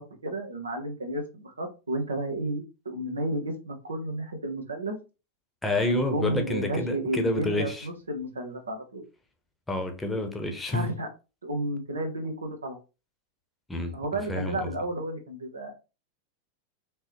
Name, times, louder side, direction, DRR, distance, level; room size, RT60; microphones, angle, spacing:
voice 1, 0.2-5.0 5.9-9.1 10.7-11.1 11.4-12.8 13.9-15.7, right 1 dB, 75° right, 1.1 m, -32 dB
voice 2, 5.6-7.9 9.7-10.9 13.7-13.9 14.3-14.7, left 2 dB, 10° left, 1.0 m, -28 dB
4.9 x 3.1 x 3.0 m
figure-of-eight pair, 90°, 0 cm